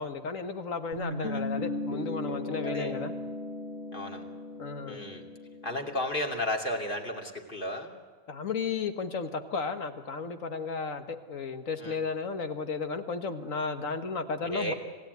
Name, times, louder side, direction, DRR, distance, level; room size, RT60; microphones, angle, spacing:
voice 1, 0.0-3.1 4.6-5.0 8.3-14.7, left 5 dB, 85° left, 8 dB, 1.9 m, -34 dB
Guitar, 0.9-6.0, left 1 dB, 60° left, 4.9 m, -36 dB
voice 2, 3.9-4.2 4.9-5.2 5.6-7.9 11.8-12.0 14.4-14.7, left 1 dB, 40° left, 2 dB, 2.9 m, -33 dB
27.0 x 17.0 x 9.5 m, 1.5 s
omnidirectional pair, 1.3 m